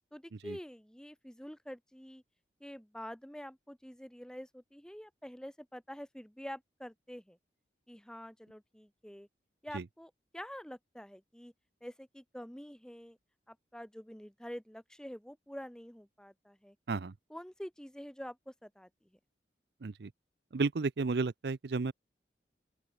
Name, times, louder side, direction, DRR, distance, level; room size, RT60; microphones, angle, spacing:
voice 1, 0.1-2.2 2.6-7.4 7.9-9.3 9.6-11.5 11.8-13.2 13.5-16.8 17.3-18.9, equal, 5° left, 0.9 m, -47 dB
voice 2, 20.5-21.9, right 4 dB, 65° right, 0.5 m, -33 dB
open air
head